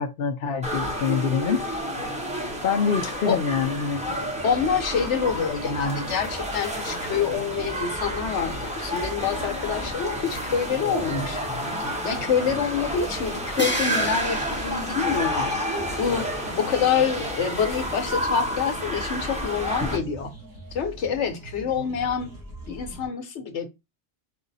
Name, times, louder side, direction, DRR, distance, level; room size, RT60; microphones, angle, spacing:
voice 1, 0.0-1.6 2.6-4.0, left 6 dB, 60° left, 0.8 m, -25 dB
sound 1, 0.6-20.0, equal, 5° right, 0.9 m, -30 dB
voice 2, 3.0-3.4 4.4-11.4 12.0-15.6 16.0-16.3 16.6-20.3 20.7-22.3 22.7-23.7, left 6 dB, 80° left, 1.1 m, -26 dB
sound 2, 3.9-23.0, right 1 dB, 35° right, 2.7 m, -42 dB
Crash cymbal, 13.6-15.6, left 1 dB, 15° left, 0.6 m, -33 dB
4.8 x 2.6 x 4.0 m
omnidirectional pair, 1.2 m